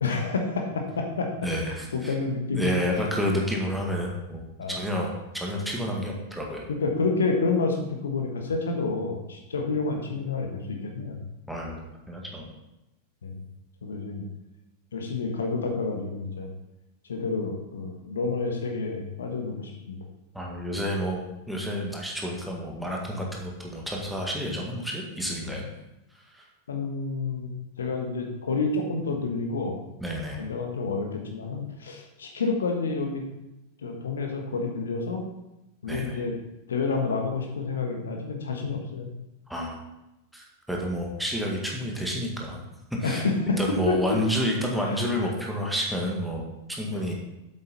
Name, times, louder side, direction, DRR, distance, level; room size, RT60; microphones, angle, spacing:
voice 1, 0.0-1.3 1.9-2.7 4.6-4.8 6.7-11.2 13.2-13.4 13.8-14.2 14.9-16.5 17.1-20.0 25.4-25.5 26.7-27.5 27.8-29.8 30.3-33.2 33.8-35.2 35.8-36.3 36.7-39.1 43.0-43.6 44.8-45.3 46.9-47.0, left 4 dB, 70° left, 3 dB, 1.3 m, -29 dB
voice 2, 1.4-2.1 2.5-6.7 11.5-11.8 12.1-12.5 20.3-25.6 26.3-26.4 30.0-30.4 35.9-36.2 39.5-39.8 40.3-42.6 43.0-43.2 43.6-47.1, equal, ahead, -2 dB, 1.9 m, -30 dB
8.0 x 7.9 x 4.1 m, 0.95 s
figure-of-eight pair, 90°, 0 cm